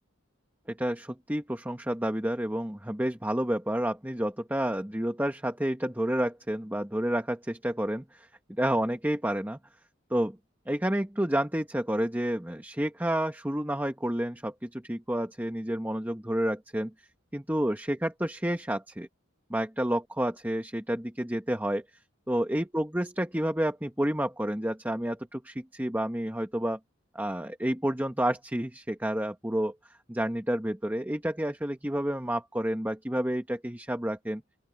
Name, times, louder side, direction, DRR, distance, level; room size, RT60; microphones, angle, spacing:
voice 1, 0.7-9.6 10.1-10.4 10.7-16.9 17.3-19.1 19.5-21.8 22.3-26.8 27.1-29.7 30.1-34.4, right 1 dB, 10° right, 1.3 m, -30 dB
open air
head